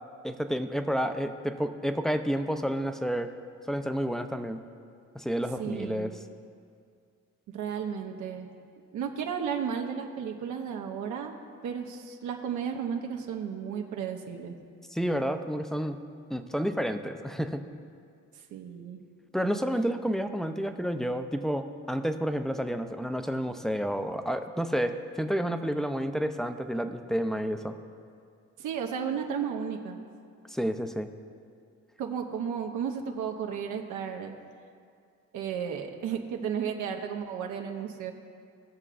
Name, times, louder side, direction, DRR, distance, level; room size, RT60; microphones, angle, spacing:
voice 1, 0.2-3.3 3.7-4.6 5.1-6.1 14.9-16.0 16.3-17.6 19.3-27.8 30.5-31.1, equal, ahead, 8 dB, 0.5 m, -30 dB
voice 2, 5.6-6.1 7.5-8.5 8.9-11.3 11.6-14.5 18.5-19.0 19.7-19.8 28.6-30.0 32.0-34.3 35.3-38.1, right 7 dB, 80° right, 3 dB, 0.9 m, -33 dB
18.0 x 6.7 x 2.5 m, 2.3 s
cardioid pair, 90°, 30 cm